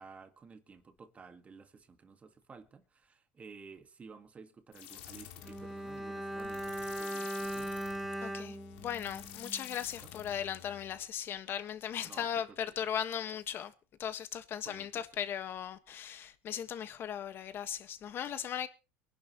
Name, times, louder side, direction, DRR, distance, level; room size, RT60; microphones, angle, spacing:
voice 1, 0.0-7.8 10.0-10.1 12.0-12.9 14.6-15.1, right 5 dB, 20° right, 1.8 m, -54 dB
sound 1, 4.7-11.0, left 11 dB, 85° left, 2.5 m, -50 dB
Bowed string instrument, 5.4-9.9 10.1-10.3, right 1 dB, ahead, 1.2 m, -39 dB
voice 2, 8.2-13.7 14.0-18.7, left 9 dB, 40° left, 1.5 m, -38 dB
23.5 x 11.0 x 3.1 m
supercardioid pair, 130°, 6 cm